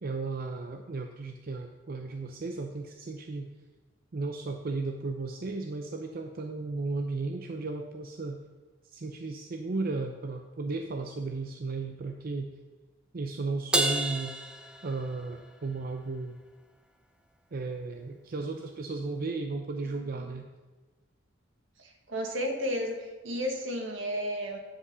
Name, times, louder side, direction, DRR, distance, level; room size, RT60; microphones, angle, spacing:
voice 1, 0.0-3.5 4.1-8.4 8.9-12.5 13.1-14.3 14.8-16.4 17.5-20.5, right 3 dB, 50° right, 4 dB, 0.6 m, -35 dB
Crash cymbal, 13.7-15.5, right 1 dB, 5° right, 0.7 m, -30 dB
voice 2, 21.8-24.6, equal, 75° right, 2 dB, 1.6 m, -33 dB
9.7 x 5.2 x 6.8 m, 1.3 s
head